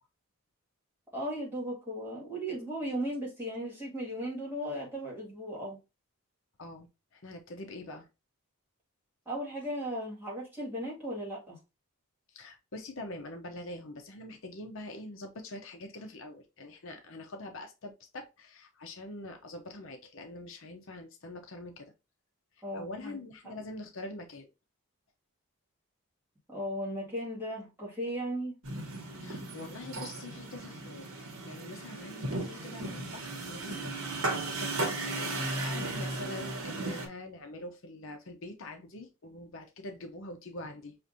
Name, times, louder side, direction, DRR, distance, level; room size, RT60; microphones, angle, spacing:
voice 1, 1.1-5.8 9.3-11.6 22.6-23.2 26.5-28.5, equal, 10° right, 1.8 m, -36 dB
voice 2, 6.6-8.1 12.3-21.9 22.7-24.5 29.2-34.0 34.4-34.9 35.2-41.0, left 2 dB, 60° left, 0.7 m, -44 dB
sound 1, 28.6-37.1, right 2 dB, 70° right, 1.1 m, -36 dB
5.7 x 2.5 x 2.6 m
head